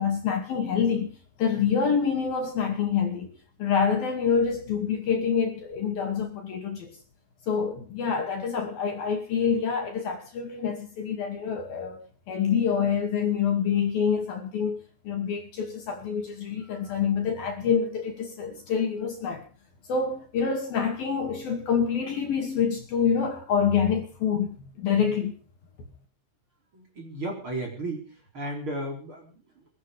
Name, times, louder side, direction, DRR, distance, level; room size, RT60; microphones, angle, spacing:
voice 1, 0.0-3.3 3.6-7.0 7.5-12.0 12.3-19.4 19.9-25.4, left 6 dB, 55° left, 3.8 m, -26 dB
voice 2, 26.7-28.1 28.3-29.4, right 1 dB, 25° right, 4.5 m, -34 dB
21.5 x 12.0 x 5.1 m
omnidirectional pair, 5.7 m